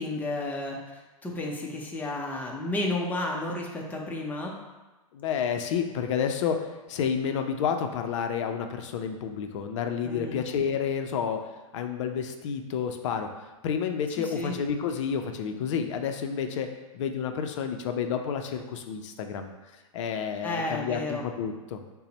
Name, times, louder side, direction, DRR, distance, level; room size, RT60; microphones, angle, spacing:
voice 1, 0.0-4.5 10.0-10.4 14.2-14.5 20.4-21.2, left 2 dB, 10° left, -1 dB, 0.5 m, -32 dB
voice 2, 5.1-11.5 11.7-13.3 13.6-16.7 16.9-19.5 19.9-21.8, left 7 dB, 60° left, 6 dB, 0.4 m, -30 dB
4.0 x 2.0 x 3.9 m, 1.2 s
hypercardioid pair, 125°, 18 cm